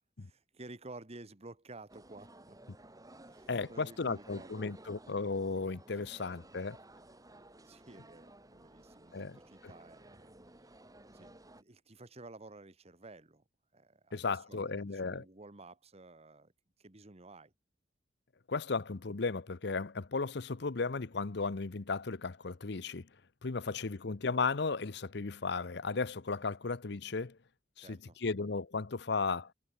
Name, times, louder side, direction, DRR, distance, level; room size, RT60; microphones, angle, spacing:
voice 1, 0.2-2.6 3.2-4.7 7.6-10.3 11.1-13.4 13.7-16.5 16.8-17.5 23.7-23.8 27.8-28.2, right 2 dB, 35° right, 1.5 m, -53 dB
sound 1, 1.9-11.6, right 1 dB, 20° right, 4.4 m, -56 dB
voice 2, 3.5-6.8 9.1-9.4 14.1-15.2 18.5-23.1 23.4-27.4 27.8-29.5, left 4 dB, 65° left, 0.8 m, -35 dB
head